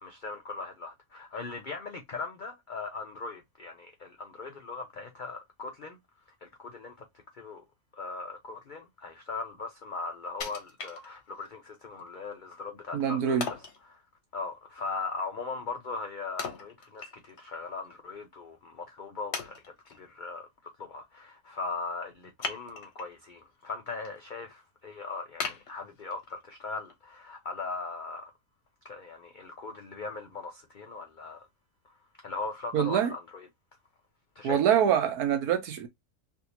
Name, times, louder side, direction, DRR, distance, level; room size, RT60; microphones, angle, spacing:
voice 1, 0.0-6.0 6.4-7.1 7.3-7.6 7.9-13.4 13.9-14.0 14.3-19.6 19.9-28.3 28.8-31.5 32.2-33.5 34.4-34.8, left 4 dB, 70° left, 0.4 m, -39 dB
Wood, 10.4-11.5 12.0-12.1 13.4-13.8 16.4-17.5 17.8-17.9 18.6-18.7 19.3-20.0 22.4-23.2 23.6-24.1 24.5-24.6 25.4-26.4 26.9-27.0, left 5 dB, 55° left, 0.9 m, -38 dB
voice 2, 12.9-13.4 32.7-33.1 34.4-35.9, right 9 dB, 75° right, 1.3 m, -25 dB
3.3 x 2.6 x 2.7 m
omnidirectional pair, 1.6 m